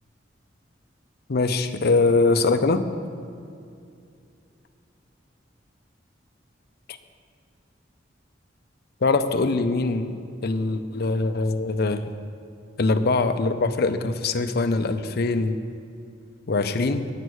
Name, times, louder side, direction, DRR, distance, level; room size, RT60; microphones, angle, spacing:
voice 1, 1.3-2.8 9.0-10.2 10.4-12.0 12.8-15.6 16.5-17.1, left 3 dB, 60° left, 9 dB, 0.6 m, -22 dB
9.4 x 8.8 x 6.3 m, 2.5 s
head